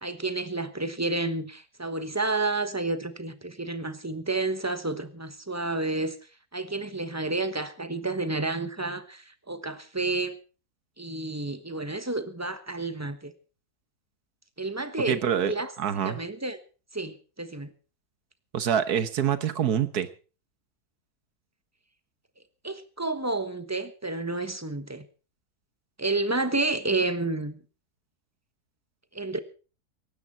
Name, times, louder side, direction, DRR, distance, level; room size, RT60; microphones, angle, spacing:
voice 1, 0.0-6.2 6.5-10.3 11.0-13.3 14.6-15.2 15.5-15.7 16.0-16.6 16.9-17.7 22.6-25.0 26.0-27.6 29.1-29.4, right 2 dB, 10° right, 1.1 m, -30 dB
voice 2, 15.1-15.5 15.8-16.2 18.5-20.1, right 8 dB, 75° right, 1.7 m, -25 dB
18.5 x 15.5 x 4.2 m
omnidirectional pair, 1.6 m